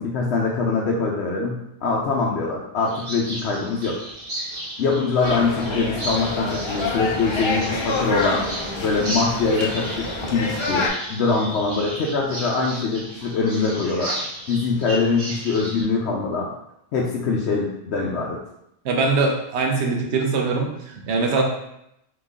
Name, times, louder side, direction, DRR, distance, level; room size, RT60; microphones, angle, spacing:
voice 1, 0.0-4.0 4.8-8.4 8.8-14.1 14.5-16.5 16.9-18.4, left 4 dB, 70° left, -3 dB, 0.9 m, -23 dB
sound 1, 2.8-15.8, right 1 dB, 40° right, 0.8 m, -34 dB
sound 2, 5.2-10.9, left 2 dB, 35° left, 0.4 m, -27 dB
voice 2, 18.8-21.4, right 3 dB, 70° right, 1 dB, 1.0 m, -22 dB
3.8 x 3.1 x 3.6 m, 0.81 s
omnidirectional pair, 1.2 m